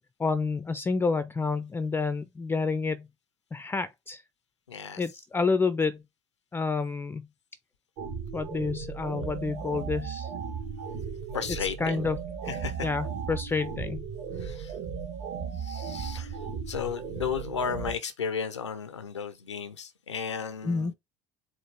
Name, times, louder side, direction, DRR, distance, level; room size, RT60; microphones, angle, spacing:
voice 1, 0.2-3.1 3.5-4.2 5.0-6.0 6.5-7.3 8.3-10.3 11.8-12.2 12.8-14.1 20.6-20.9, left 4 dB, 15° left, 0.4 m, -29 dB
voice 2, 4.7-5.1 11.3-12.0 12.5-12.9 14.3-14.8 15.5-20.9, left 7 dB, 85° left, 0.6 m, -34 dB
sound 1, 8.0-17.9, right 6 dB, 55° right, 1.2 m, -36 dB
4.6 x 2.4 x 4.6 m
figure-of-eight pair, 65°, 15 cm